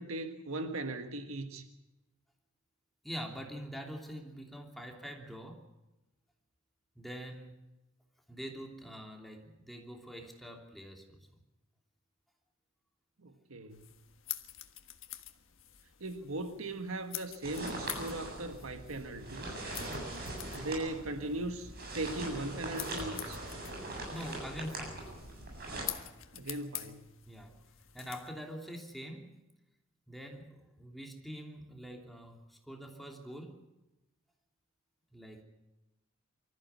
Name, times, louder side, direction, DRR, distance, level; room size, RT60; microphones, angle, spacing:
voice 1, 0.0-1.6 13.2-13.8 16.0-19.6 20.6-23.4 26.3-27.1, right 2 dB, 85° right, 7 dB, 1.5 m, -39 dB
voice 2, 3.0-5.7 6.9-7.6 8.3-11.2 19.8-20.1 24.1-25.1 27.2-27.5 27.9-29.3 30.1-33.6 35.1-35.4, equal, ahead, 1 dB, 3.0 m, -45 dB
sound 1, 13.7-28.3, left 14 dB, 70° left, 1.5 m, -47 dB
sound 2, 17.4-25.8, right 2 dB, 50° right, 7.8 m, -41 dB
24.5 x 14.5 x 8.3 m, 0.98 s
head